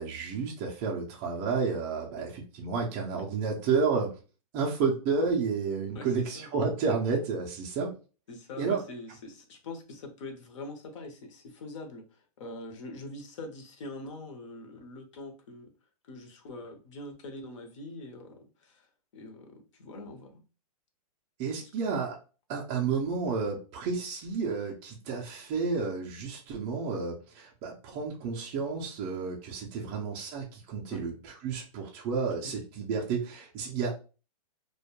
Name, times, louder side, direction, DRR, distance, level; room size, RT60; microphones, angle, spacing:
voice 1, 0.0-4.1 4.5-7.9 8.6-8.8 21.4-22.2 22.5-31.1 31.4-33.9, right 5 dB, 20° right, -2 dB, 0.3 m, -31 dB
voice 2, 5.9-6.5 8.3-15.7 16.0-20.4 21.6-21.7 30.9-31.0 32.4-32.5, left 2 dB, 50° left, 5 dB, 0.7 m, -44 dB
2.2 x 2.1 x 2.8 m, 0.34 s
hypercardioid pair, 150°, 20 cm